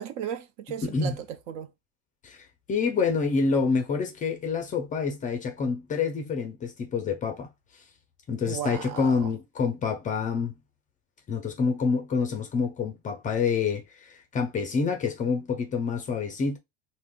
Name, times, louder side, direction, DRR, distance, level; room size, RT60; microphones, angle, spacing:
voice 1, 0.0-1.7 8.4-9.3, right 9 dB, 70° right, 0.6 m, -35 dB
voice 2, 0.8-1.2 2.2-7.5 8.3-10.5 11.3-16.6, left 5 dB, 20° left, 0.4 m, -27 dB
3.5 x 2.1 x 2.2 m
supercardioid pair, 130°, 39 cm